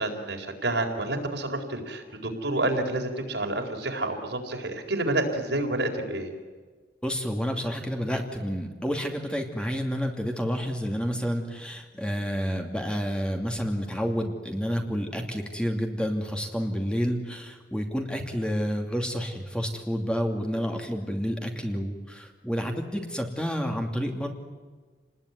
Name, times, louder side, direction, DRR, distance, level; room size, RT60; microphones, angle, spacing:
voice 1, 0.0-6.3, right 2 dB, 75° right, 3 dB, 4.3 m, -29 dB
voice 2, 7.0-24.3, equal, 5° left, 3 dB, 2.6 m, -29 dB
29.0 x 20.0 x 9.5 m, 1.5 s
head